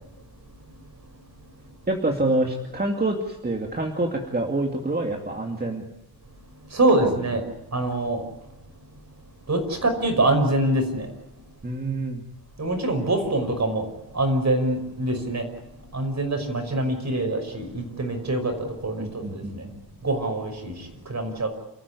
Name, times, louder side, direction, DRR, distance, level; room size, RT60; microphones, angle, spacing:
voice 1, 1.9-5.8 7.0-7.1 11.6-12.2 19.0-19.8, right 2 dB, 25° right, 2 dB, 2.4 m, -27 dB
voice 2, 6.7-7.4 7.7-8.2 9.5-11.1 12.6-13.9 14.1-15.4 15.9-18.5 18.8-19.0 19.3-19.6 20.0-20.7 21.1-21.5, right 2 dB, 45° right, 5 dB, 5.7 m, -24 dB
29.0 x 14.5 x 9.8 m, 0.96 s
wide cardioid pair, 120°, 38 cm